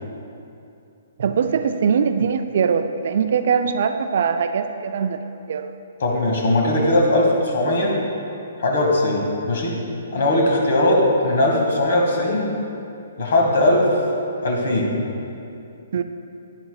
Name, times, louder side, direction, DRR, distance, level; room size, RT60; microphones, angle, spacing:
voice 1, 1.2-5.2 5.5-5.7 15.9-16.0, right 6 dB, 55° right, 9 dB, 0.4 m, -21 dB
voice 2, 6.0-7.9 8.6-9.8 10.1-12.6 13.2-13.9 14.4-14.9, left 1 dB, 60° left, -1 dB, 1.9 m, -19 dB
10.0 x 10.0 x 2.3 m, 2.7 s
figure-of-eight pair, 125°, 0 cm